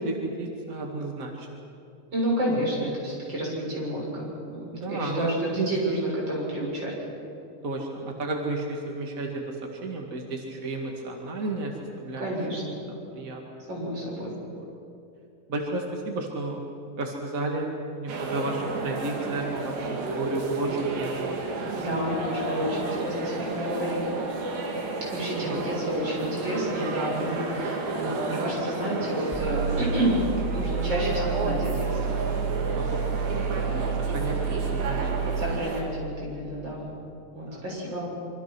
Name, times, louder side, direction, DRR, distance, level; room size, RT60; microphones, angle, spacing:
voice 1, 0.0-1.5 4.7-5.7 7.6-12.5 12.9-13.4 14.5-14.6 15.5-16.6 17.0-21.4 21.7-22.0 25.4-25.7 32.7-32.8 33.3-35.3 37.4-37.6, right 2 dB, 40° right, 1 dB, 1.1 m, -32 dB
voice 2, 2.1-6.9 12.2-12.8 13.7-14.4 21.8-24.1 25.1-30.3 30.5-32.1 35.4-36.9 37.3-38.1, right 1 dB, 25° right, -4 dB, 7.4 m, -30 dB
sound 1, 18.1-35.8, right 3 dB, 70° right, 4.8 m, -32 dB
sound 2, 29.3-35.5, right 5 dB, 5° left, 4.4 m, -29 dB
26.5 x 24.5 x 6.2 m, 2.7 s
omnidirectional pair, 5.2 m